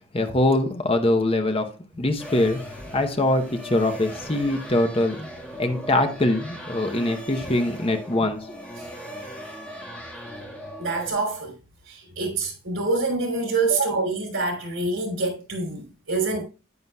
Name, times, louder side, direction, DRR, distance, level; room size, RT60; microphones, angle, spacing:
voice 1, 0.1-1.7 2.0-2.6 2.9-5.3 5.6-8.5, left 1 dB, 30° left, 0.8 m, -23 dB
sound 1, 2.2-11.1, equal, 5° left, 1.6 m, -38 dB
voice 2, 10.8-11.5 11.9-16.4, right 3 dB, 85° right, 3.2 m, -26 dB
9.5 x 9.4 x 2.3 m
head